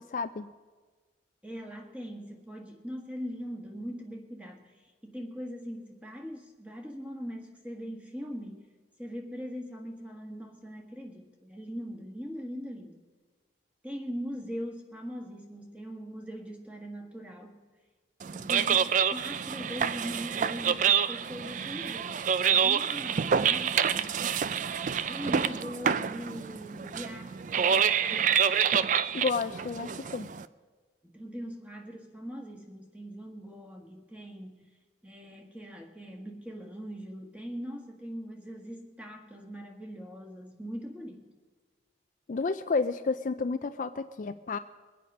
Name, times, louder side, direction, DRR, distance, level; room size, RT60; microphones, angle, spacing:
voice 1, 0.1-0.5 29.1-30.3 42.3-44.6, left 4 dB, 45° left, 10 dB, 0.4 m, -31 dB
voice 2, 1.4-4.7 5.0-8.7 9.0-13.0 13.8-17.6 18.3-24.2 25.1-28.4 31.1-34.7 35.0-41.3, equal, 5° right, 2 dB, 1.4 m, -41 dB
sound 1, 18.2-30.4, right 7 dB, 40° right, 0.4 m, -27 dB
22.5 x 8.6 x 5.4 m, 1.4 s
head